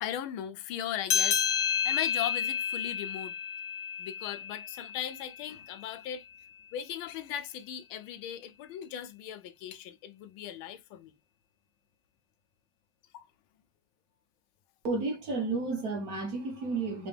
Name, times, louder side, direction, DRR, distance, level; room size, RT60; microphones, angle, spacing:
voice 1, 0.0-3.3 4.0-6.2 6.7-11.1 13.1-13.3, left 10 dB, 85° left, 1.5 m, -38 dB
sound 1, 1.1-6.0, left 8 dB, 70° left, 1.5 m, -31 dB
voice 2, 14.8-17.1, right 3 dB, 50° right, 1.6 m, -32 dB
4.1 x 3.8 x 3.4 m
omnidirectional pair, 2.2 m